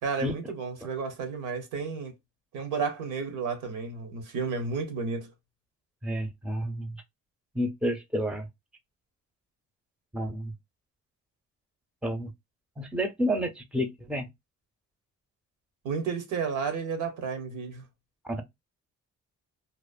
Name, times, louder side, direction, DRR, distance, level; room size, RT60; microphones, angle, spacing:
voice 1, 0.0-2.1 2.5-5.3 15.8-17.9, right 5 dB, 90° right, 0.9 m, -32 dB
voice 2, 6.0-6.9 7.5-8.5 10.1-10.5 12.0-12.3 12.8-14.3 18.2-18.4, equal, 5° right, 0.5 m, -30 dB
2.8 x 2.0 x 2.3 m
cardioid pair, 90°, 30 cm